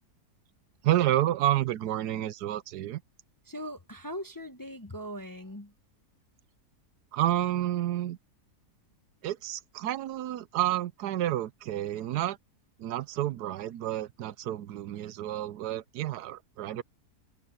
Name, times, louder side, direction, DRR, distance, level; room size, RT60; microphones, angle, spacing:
voice 1, 0.8-3.0 7.1-8.2 9.2-12.4 12.8-16.8, right 13 dB, 85° right, 1.2 m, -30 dB
voice 2, 3.5-5.7, equal, 20° left, 0.6 m, -40 dB
omnidirectional pair, 1.7 m